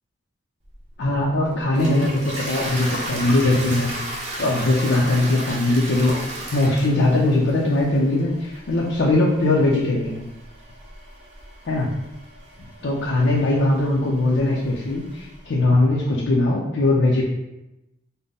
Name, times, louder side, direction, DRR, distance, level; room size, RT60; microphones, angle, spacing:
Toilet flush, 0.7-15.4, right 1 dB, 40° right, 0.7 m, -35 dB
voice 1, 1.0-3.9 4.4-6.2 6.5-10.2 11.7-11.9 12.8-17.2, left 2 dB, 80° left, -4 dB, 0.5 m, -20 dB
3.5 x 2.1 x 4.0 m, 0.93 s
head